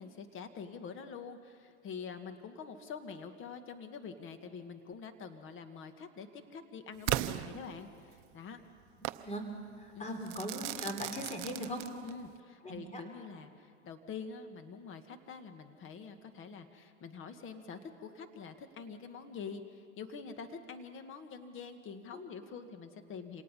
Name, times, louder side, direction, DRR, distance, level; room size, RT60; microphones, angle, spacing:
voice 1, 0.0-8.6 9.9-10.2 12.0-23.4, left 5 dB, 35° left, 8 dB, 1.8 m, -46 dB
Crackle / Fireworks, 7.1-8.2 9.0-9.3 10.3-12.3, right 16 dB, 50° right, 0.7 m, -37 dB
voice 2, 9.0-9.5 9.8-11.8 12.6-13.0 22.1-22.2, equal, 20° left, 4 dB, 3.6 m, -40 dB
27.0 x 18.5 x 5.5 m, 2.3 s
hypercardioid pair, 100°, 35 cm